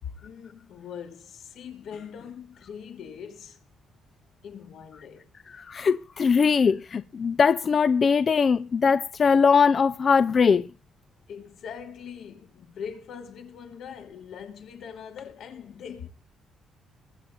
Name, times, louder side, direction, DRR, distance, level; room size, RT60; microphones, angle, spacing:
voice 1, 0.0-3.6 4.4-5.3 11.3-16.1, left 7 dB, 70° left, 2.6 m, -41 dB
voice 2, 5.5-10.7, left 5 dB, 45° left, 0.6 m, -21 dB
22.0 x 7.7 x 4.0 m
cardioid pair, 90°, 0 cm